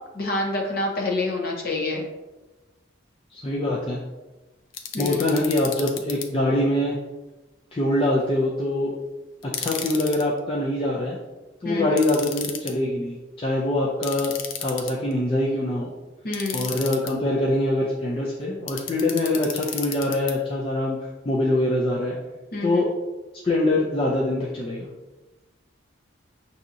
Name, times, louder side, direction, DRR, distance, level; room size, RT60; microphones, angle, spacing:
voice 1, 0.1-2.1 4.9-5.2 11.6-12.0 16.2-16.7 22.5-22.8, left 2 dB, 50° left, 0 dB, 0.8 m, -27 dB
voice 2, 3.3-4.0 5.0-7.0 7.7-8.9 9.6-11.2 11.6-15.9 16.5-21.0 21.2-22.2 22.6-22.9 23.4-24.9, left 1 dB, 25° left, -4 dB, 0.4 m, -24 dB
sound 1, 4.7-6.3 9.4-10.2 12.0-12.7 14.0-15.1 16.3-17.1 18.7-20.3, left 7 dB, 85° left, 0.5 m, -33 dB
5.9 x 2.7 x 2.6 m, 1.1 s
head